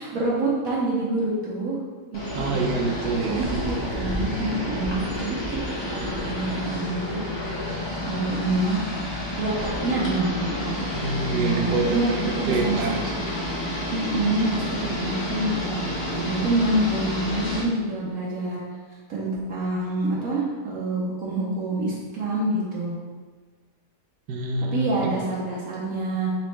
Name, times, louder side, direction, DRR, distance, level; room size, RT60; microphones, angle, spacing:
voice 1, 0.0-1.8 2.1-2.7 3.3-5.6 5.8-7.2 8.1-8.8 9.4-10.7 11.3-13.0 13.9-15.8 16.1-18.6 19.1-23.0 24.7-26.3, right 2 dB, 65° right, -5 dB, 1.1 m, -27 dB
sound 1, 2.1-17.6, left 1 dB, 35° left, 0.4 m, -30 dB
voice 2, 2.3-3.5 10.9-12.2 12.5-12.9 24.3-24.9, right 3 dB, 85° right, 1 dB, 1.2 m, -26 dB
4.1 x 3.3 x 3.2 m, 1.5 s
omnidirectional pair, 1.7 m